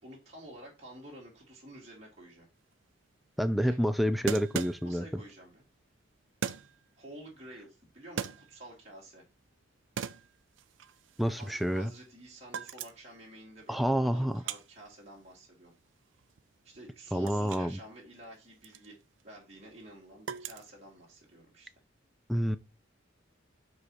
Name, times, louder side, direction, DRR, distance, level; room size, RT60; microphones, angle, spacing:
voice 1, 0.0-2.5 3.6-3.8 4.8-5.7 7.0-9.2 11.4-15.7 16.6-19.0 19.2-21.7, right 1 dB, 35° right, 2.3 m, -50 dB
sound 1, 2.6-2.7 2.9-3.0 4.3-5.2 6.4-6.9 7.9-8.9 9.3-9.6 10.0-12.1 12.4-13.2 13.5-17.8 18.0-21.3, right 7 dB, 80° right, 0.5 m, -40 dB
voice 2, 3.4-5.0 11.2-11.9 13.7-14.4 17.1-17.8 22.3-22.6, equal, ahead, 0.4 m, -28 dB
5.3 x 4.2 x 6.1 m
head